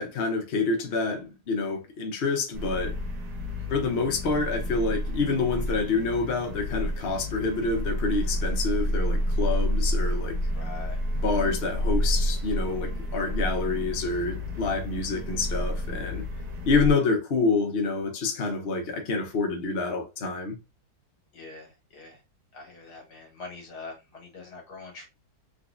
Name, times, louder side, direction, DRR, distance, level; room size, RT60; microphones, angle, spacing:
voice 1, 0.0-2.9 3.7-10.4 11.2-16.2 16.7-20.6, left 4 dB, 50° left, 0.8 m, -27 dB
sound 1, 2.5-16.9, equal, 80° right, 1.5 m, -29 dB
voice 2, 10.6-11.0 21.3-22.2 22.5-25.1, left 3 dB, 70° left, 1.8 m, -43 dB
3.8 x 2.5 x 2.4 m
omnidirectional pair, 1.8 m